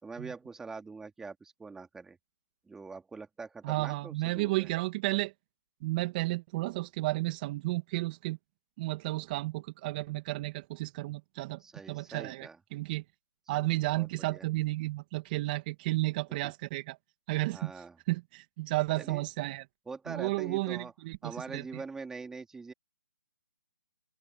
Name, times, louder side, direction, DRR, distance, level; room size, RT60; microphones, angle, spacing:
voice 1, 0.0-2.2 2.7-4.7 11.6-12.6 13.7-14.4 16.4-16.5 17.5-18.0 19.0-19.3 19.9-20.9 21.2-22.7, right 4 dB, 5° right, 2.5 m, -44 dB
voice 2, 3.6-5.3 5.8-8.4 8.8-11.6 11.9-13.0 13.5-17.0 17.3-17.7 18.1-19.7 20.1-21.8, right 20 dB, 25° right, 2.4 m, -32 dB
open air
hypercardioid pair, 155°, 10 cm